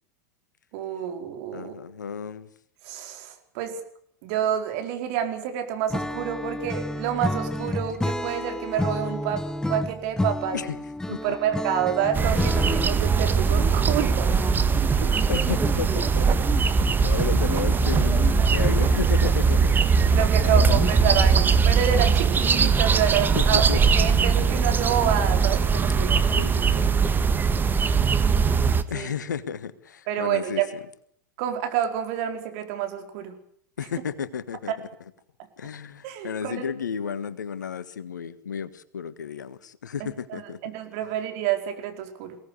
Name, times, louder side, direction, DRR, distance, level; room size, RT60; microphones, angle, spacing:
voice 1, 0.7-1.7 2.8-3.8 4.2-10.6 11.1-14.3 15.0-15.3 20.1-26.1 28.9-29.1 30.1-30.7 31.4-33.4 34.7-34.8 36.0-36.7 40.0-42.4, right 9 dB, 60° right, 6 dB, 4.7 m, -28 dB
voice 2, 1.5-2.5 10.5-10.8 11.1-11.2 15.3-16.5 17.0-19.8 20.4-21.2 23.3-24.0 26.3-27.0 28.9-30.6 33.8-34.7 35.6-40.6, left 7 dB, 85° left, 15 dB, 1.5 m, -33 dB
Acoustic guitar / Strum, 5.9-13.1, left 1 dB, 5° left, 1.0 m, -30 dB
sound 1, 12.1-28.8, right 5 dB, 20° right, 1.6 m, -21 dB
Writing, 14.7-24.0, right 11 dB, 40° right, 1.9 m, -37 dB
22.5 x 17.5 x 8.4 m, 0.64 s
hypercardioid pair, 90°, 10 cm